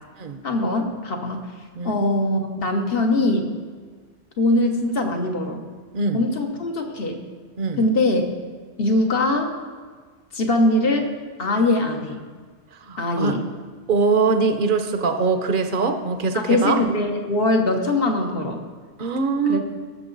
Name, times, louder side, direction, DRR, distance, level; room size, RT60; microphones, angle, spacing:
voice 1, 0.4-1.5 1.8-3.5 4.4-5.6 6.1-7.3 7.8-8.3 8.8-9.6 10.3-11.1 11.4-12.2 13.0-13.4 15.8-15.9 16.3-18.6 19.5-19.6, left 2 dB, 55° left, 3 dB, 1.3 m, -22 dB
voice 2, 12.8-13.4 13.9-16.8 19.0-19.6, right 4 dB, 50° right, 7 dB, 0.9 m, -22 dB
18.0 x 6.9 x 3.9 m, 1.5 s
omnidirectional pair, 1.2 m